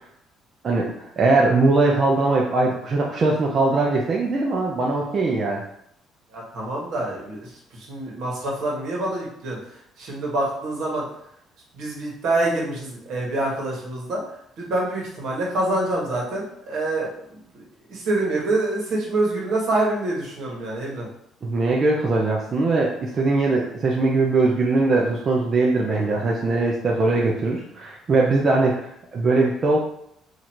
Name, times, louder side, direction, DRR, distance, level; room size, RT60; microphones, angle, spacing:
voice 1, 0.6-5.6 21.4-29.8, right 3 dB, 40° right, -2 dB, 0.6 m, -21 dB
voice 2, 6.3-11.0 11.7-14.2 14.6-21.1, right 2 dB, 70° right, -3 dB, 1.3 m, -26 dB
2.9 x 2.5 x 4.3 m, 0.72 s
cardioid pair, 95°, 0 cm